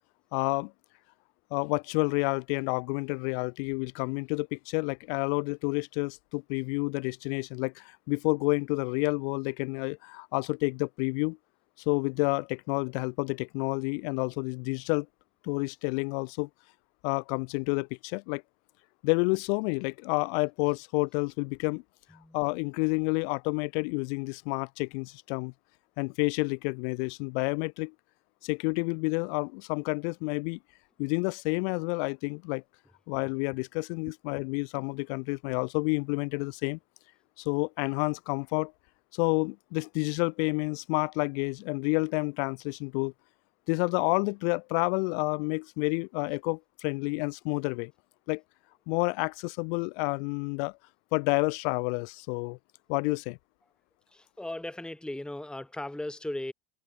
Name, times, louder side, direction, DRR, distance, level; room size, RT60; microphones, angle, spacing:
voice 1, 0.3-0.7 1.5-11.4 11.9-15.1 15.4-16.5 17.0-18.4 19.0-21.8 22.3-25.5 26.0-27.9 28.4-30.6 31.0-32.6 33.1-36.8 37.4-38.7 39.1-43.1 43.7-47.9 48.3-48.4 48.9-50.8 51.1-52.6 52.9-53.4, left 35 dB, 80° left, 1.1 m, -29 dB
voice 2, 54.1-56.5, left 1 dB, 5° left, 1.7 m, -37 dB
cardioid pair, 155°, 33 cm